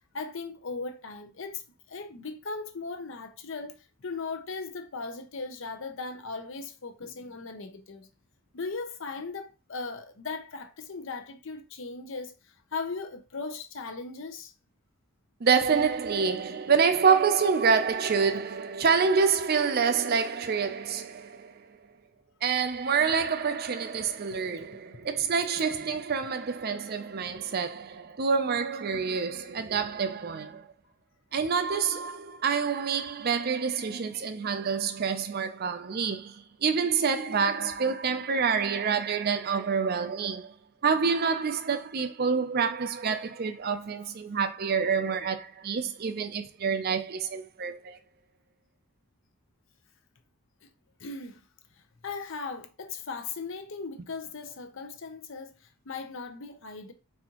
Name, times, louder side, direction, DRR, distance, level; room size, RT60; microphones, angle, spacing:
voice 1, 0.1-1.6 1.9-3.7 4.0-8.1 8.5-14.5 31.3-31.4 50.6-50.7 51.0-51.4 52.0-55.6 55.9-56.9, left 4 dB, 60° left, 0.7 m, -38 dB
voice 2, 15.4-21.5 22.4-30.7 31.3-40.6 40.8-48.0, right 5 dB, 45° right, 0.5 m, -27 dB
4.2 x 3.6 x 2.9 m
head